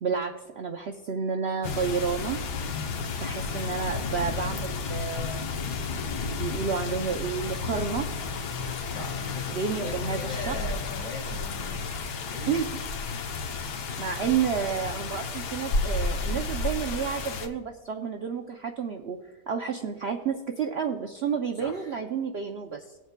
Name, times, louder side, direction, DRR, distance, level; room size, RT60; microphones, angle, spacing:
voice 1, 0.0-2.4 3.2-5.5 6.4-8.1 9.5-10.6 12.5-12.7 14.0-19.2 19.5-22.8, right 6 dB, 90° right, 3 dB, 0.5 m, -30 dB
sound 1, 1.6-17.5, left 4 dB, 75° left, 1.4 m, -32 dB
voice 2, 8.9-12.6 21.5-22.1, left 2 dB, 50° left, 0 dB, 2.1 m, -40 dB
19.0 x 8.0 x 2.2 m, 1.1 s
omnidirectional pair, 1.8 m